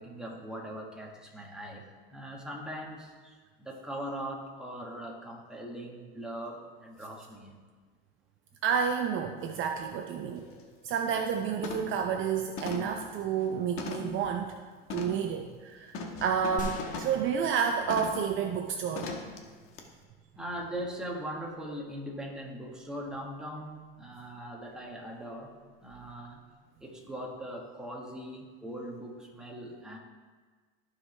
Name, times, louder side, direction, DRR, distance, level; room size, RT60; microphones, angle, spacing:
voice 1, 0.0-7.6 20.4-25.5 25.8-26.5 26.8-30.0, right 1 dB, ahead, -2 dB, 1.6 m, -40 dB
voice 2, 8.6-10.5 10.8-14.6 14.9-19.1, right 7 dB, 40° right, 4 dB, 0.6 m, -30 dB
sound 1, 9.8-9.9 10.4-10.6 11.0-11.3 11.6-12.0 12.6-14.2 14.9-15.3 15.9-17.2 17.9-18.3 19.0-19.4 19.8-19.9, left 3 dB, 45° left, 1.3 m, -39 dB
sound 2, 16.6-18.5 18.8-18.9, left 1 dB, 25° left, 1.3 m, -43 dB
14.5 x 5.0 x 3.3 m, 1.4 s
supercardioid pair, 110°, 30 cm